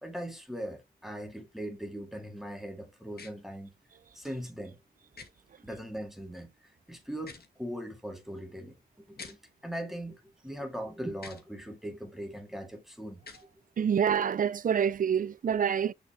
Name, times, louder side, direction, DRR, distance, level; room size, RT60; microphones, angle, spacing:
voice 1, 0.0-3.7 4.1-4.8 5.6-6.5 6.9-13.2, equal, ahead, 2.1 m, -40 dB
sound 1, 3.1-3.3 5.1-5.3 7.1-7.5 9.1-9.4 11.2-11.4 13.2-13.4, left 4 dB, 65° left, 1.9 m, -46 dB
voice 2, 13.8-15.9, right 8 dB, 55° right, 0.4 m, -27 dB
6.7 x 5.0 x 3.3 m
cardioid pair, 70°, 17 cm